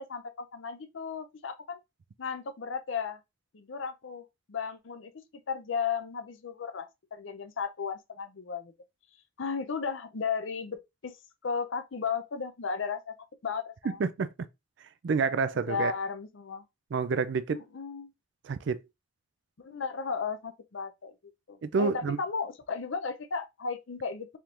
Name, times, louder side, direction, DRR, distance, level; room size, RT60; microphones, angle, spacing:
voice 1, 0.0-1.8 2.2-3.2 3.5-8.7 9.4-11.1 11.4-13.1 13.4-14.0 15.7-16.6 17.5-18.1 19.6-21.1 21.5-24.3, left 5 dB, 75° left, 0.6 m, -35 dB
voice 2, 15.0-15.9 16.9-17.6 18.4-18.8 21.6-22.2, right 4 dB, 60° right, 0.4 m, -28 dB
4.4 x 3.5 x 2.5 m
head